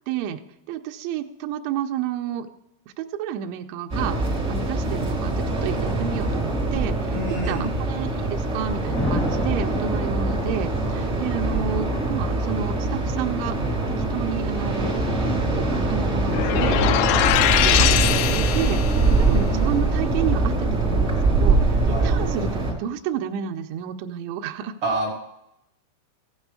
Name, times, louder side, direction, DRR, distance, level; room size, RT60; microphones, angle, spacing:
voice 1, 0.1-2.5 3.0-7.2 7.5-13.8 14.1-15.0 15.6-18.8 19.2-24.7, right 9 dB, 85° right, 5 dB, 2.8 m, -31 dB
sound 1, 3.9-22.7, right 2 dB, 40° right, 0.9 m, -23 dB
voice 2, 7.1-7.7 21.9-22.1 24.8-25.1, right 2 dB, 70° right, -1 dB, 1.2 m, -27 dB
sound 2, 8.9-10.9, equal, 10° left, 0.7 m, -28 dB
sound 3, 16.3-19.1, left 13 dB, 85° left, 3.0 m, -22 dB
15.5 x 8.9 x 4.8 m, 0.84 s
omnidirectional pair, 5.9 m